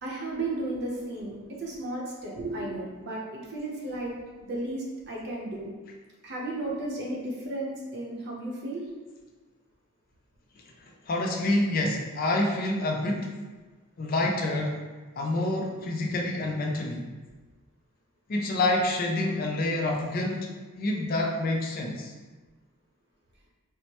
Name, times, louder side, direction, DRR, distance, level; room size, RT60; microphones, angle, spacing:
voice 1, 0.0-4.1 4.4-5.7 6.2-8.8, right 2 dB, 50° right, -3 dB, 0.7 m, -34 dB
voice 2, 10.8-13.3 14.0-14.8 15.2-17.1 18.3-22.1, left 2 dB, 40° left, 0 dB, 0.4 m, -27 dB
4.4 x 2.1 x 2.9 m, 1.3 s
head